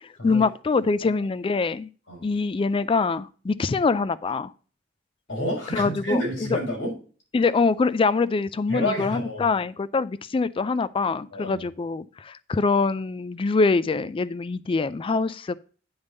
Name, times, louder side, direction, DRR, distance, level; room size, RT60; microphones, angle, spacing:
voice 1, 0.0-1.9 2.2-4.5 5.7-6.2 7.3-15.6, left 4 dB, 30° left, 0.3 m, -24 dB
voice 2, 5.3-6.9 8.7-9.5 11.3-11.6, equal, 70° left, 5.4 m, -29 dB
9.7 x 3.5 x 6.5 m
head